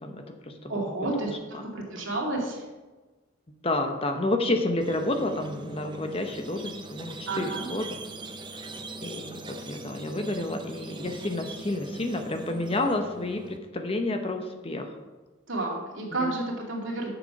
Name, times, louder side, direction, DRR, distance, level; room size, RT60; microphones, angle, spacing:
voice 1, 0.0-0.8 1.5-1.6 2.0-2.1 3.6-8.0 8.5-8.7 9.0-14.9 16.1-16.4, left 2 dB, 30° left, 5 dB, 0.9 m, -30 dB
voice 2, 0.7-2.6 7.3-7.7 15.5-17.1, right 2 dB, 85° right, -1 dB, 2.4 m, -31 dB
Squeak, 4.8-13.6, right 2 dB, 25° right, 0.6 m, -41 dB
7.6 x 6.9 x 5.9 m, 1.2 s
head